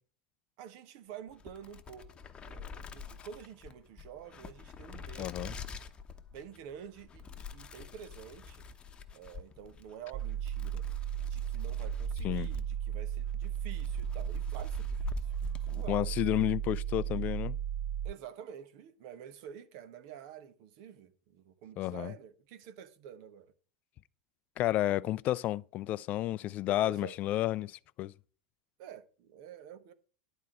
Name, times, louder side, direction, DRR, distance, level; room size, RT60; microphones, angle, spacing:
voice 1, 0.6-2.1 2.5-5.8 6.3-8.7 9.1-10.9 11.3-16.1 18.0-23.5 26.7-27.1 28.8-29.9, right 9 dB, 55° right, 1.2 m, -49 dB
sound 1, 1.3-16.2, left 5 dB, 25° left, 1.0 m, -45 dB
voice 2, 5.2-5.5 12.2-12.5 15.9-17.6 21.8-22.1 24.6-28.1, left 14 dB, 45° left, 0.4 m, -31 dB
sound 2, 10.1-18.1, right 10 dB, 35° right, 0.4 m, -35 dB
11.0 x 4.5 x 6.5 m
hypercardioid pair, 90°, 4 cm